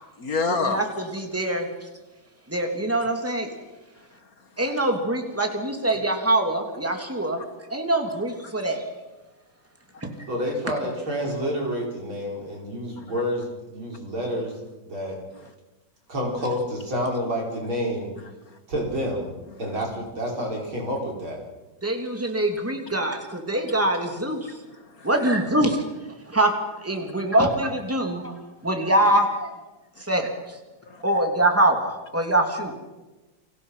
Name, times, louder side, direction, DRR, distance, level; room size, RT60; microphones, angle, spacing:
voice 1, 0.2-0.8 1.5-1.6 4.2-4.3 4.7-4.8 7.4-7.5 8.4-8.5 13.0-13.1 18.5-18.6 23.0-23.1 24.5-25.1 30.9-31.0, left 4 dB, 50° left, 9 dB, 1.8 m, -30 dB
voice 2, 1.1-1.7 2.5-3.5 4.6-7.4 7.7-8.8 10.0-10.1 21.8-24.5 25.0-25.8 26.3-26.5 26.8-28.3 28.6-29.5 30.1-30.3 31.0-32.7, right 1 dB, 5° right, 3 dB, 3.0 m, -23 dB
voice 3, 10.3-14.6 14.8-15.2 16.1-18.1 18.7-19.3 19.6-21.4, equal, 85° right, -1 dB, 6.5 m, -28 dB
30.0 x 24.5 x 5.8 m, 1.1 s
omnidirectional pair, 2.2 m